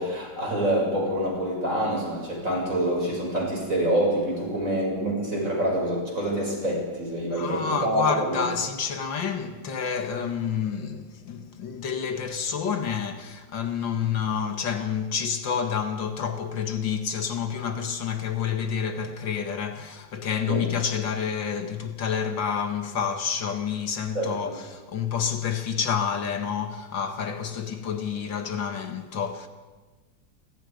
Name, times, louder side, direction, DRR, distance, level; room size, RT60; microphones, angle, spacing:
voice 1, 0.0-8.5 20.5-20.7 24.1-24.6, right 1 dB, 45° right, 7.9 m, -26 dB
voice 2, 7.3-29.5, left 7 dB, 85° left, 2.5 m, -29 dB
29.5 x 24.5 x 5.3 m
omnidirectional pair, 2.0 m